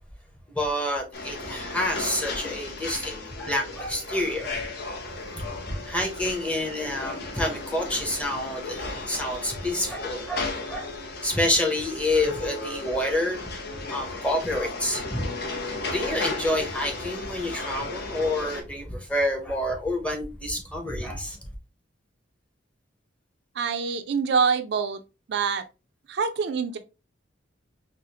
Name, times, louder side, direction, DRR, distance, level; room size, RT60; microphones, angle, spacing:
voice 1, 0.5-4.6 5.0-10.9 11.2-13.4 13.9-15.3 15.9-21.4, left 1 dB, 5° left, 0.7 m, -28 dB
sound 1, 1.1-18.6, left 3 dB, 55° left, 0.7 m, -35 dB
voice 2, 23.6-25.0 25.3-25.6 26.1-26.8, right 5 dB, 60° right, 0.4 m, -25 dB
4.7 x 2.0 x 2.8 m
head